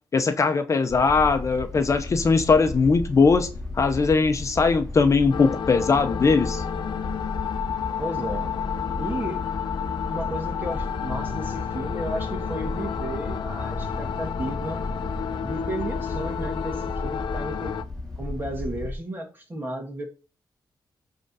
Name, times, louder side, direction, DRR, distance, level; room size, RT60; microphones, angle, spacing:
voice 1, 0.1-3.5 3.8-6.6, left 4 dB, 40° left, 0.8 m, -20 dB
sound 1, 0.9-18.9, left 2 dB, 10° left, 2.1 m, -34 dB
sound 2, 5.3-17.8, left 8 dB, 85° left, 0.7 m, -31 dB
voice 2, 8.0-8.5 9.0-9.4 10.1-14.8 15.4-17.8 18.2-20.1, right 1 dB, 25° right, 2.3 m, -33 dB
7.7 x 3.8 x 5.6 m
wide cardioid pair, 110°, 8 cm